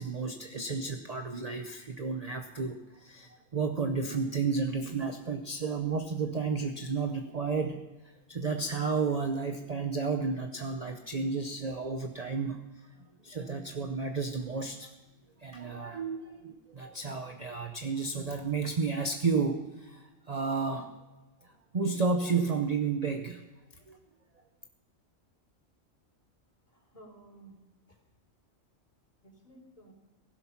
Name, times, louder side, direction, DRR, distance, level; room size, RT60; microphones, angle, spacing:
voice 1, 0.0-7.8 8.3-12.7 13.2-14.9 15.4-20.9 21.7-23.4 23.9-24.0, right 4 dB, 35° right, 5 dB, 0.8 m, -32 dB
voice 2, 26.7-28.0 29.2-29.9, right 1 dB, 30° left, -1 dB, 3.5 m, -55 dB
16.0 x 11.5 x 5.8 m, 1.1 s
omnidirectional pair, 1.3 m